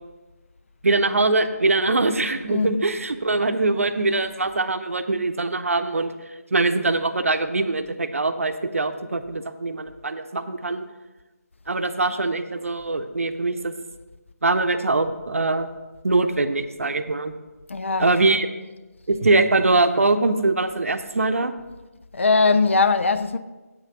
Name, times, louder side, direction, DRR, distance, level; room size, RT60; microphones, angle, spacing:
voice 1, 0.8-6.1 6.5-10.8 11.7-13.7 14.4-15.7 16.0-17.3 18.0-18.5 19.1-21.5, right 3 dB, 55° right, 0.8 m, -22 dB
voice 2, 17.7-18.1 22.1-23.4, left 4 dB, 50° left, 0.6 m, -20 dB
8.6 x 5.7 x 6.8 m
figure-of-eight pair, 160°, 9 cm